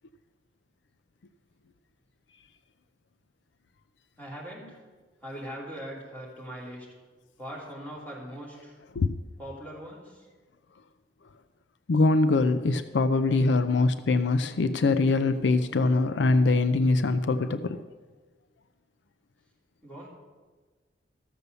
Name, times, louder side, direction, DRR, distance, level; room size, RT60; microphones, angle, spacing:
voice 1, 4.2-4.8 5.2-6.9 7.4-8.8 9.4-10.3 19.8-20.1, equal, 10° left, -4 dB, 2.9 m, -41 dB
voice 2, 11.9-17.8, left 3 dB, 80° left, 11 dB, 0.5 m, -23 dB
13.5 x 6.9 x 6.7 m, 1.3 s
head